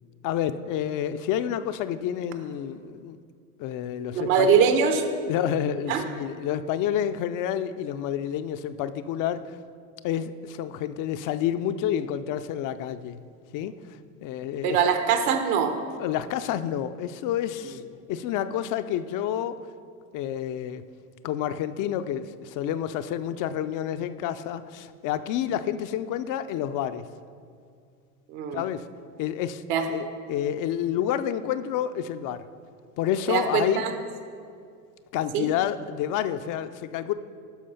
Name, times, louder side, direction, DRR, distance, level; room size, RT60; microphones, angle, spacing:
voice 1, 0.2-3.2 3.6-4.7 5.3-9.4 10.0-13.2 13.5-13.7 14.2-15.0 16.0-17.8 18.1-19.6 20.1-20.8 21.2-27.1 28.5-28.9 29.2-29.6 29.9-32.4 33.0-33.8 35.1-37.1, left 10 dB, 45° left, 11 dB, 0.5 m, -29 dB
voice 2, 4.1-5.0 5.9-6.0 14.6-15.7 28.3-28.6 29.7-29.9 33.3-33.9 35.3-35.5, right 7 dB, 65° right, 7 dB, 1.2 m, -22 dB
12.0 x 4.8 x 5.6 m, 2.3 s
hypercardioid pair, 90°, 46 cm